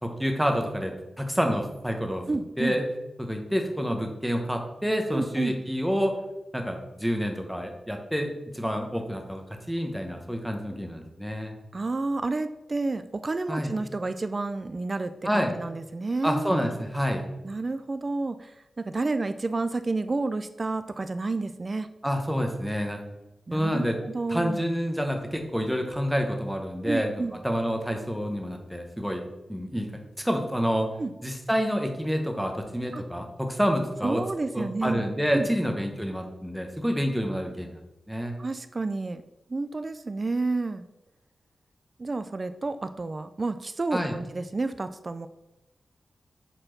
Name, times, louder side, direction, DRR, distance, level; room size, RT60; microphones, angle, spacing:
voice 1, 0.0-2.2 2.6-2.9 3.2-6.1 6.5-9.4 9.7-11.5 13.5-13.7 15.2-15.5 16.2-17.2 22.0-23.0 23.5-24.0 24.3-27.1 27.4-29.2 29.5-30.9 31.2-34.2 34.5-37.8 38.1-38.3 43.9-44.1, equal, ahead, 3 dB, 1.1 m, -28 dB
voice 2, 2.3-2.8 5.1-5.6 11.7-16.5 17.4-21.9 23.5-24.6 26.8-27.4 31.0-31.1 32.9-33.0 34.0-35.0 35.3-35.5 38.4-39.2 39.5-40.8 42.0-45.3, right 3 dB, 30° right, 12 dB, 0.4 m, -30 dB
7.7 x 4.5 x 5.9 m, 0.95 s
wide cardioid pair, 155°, 0 cm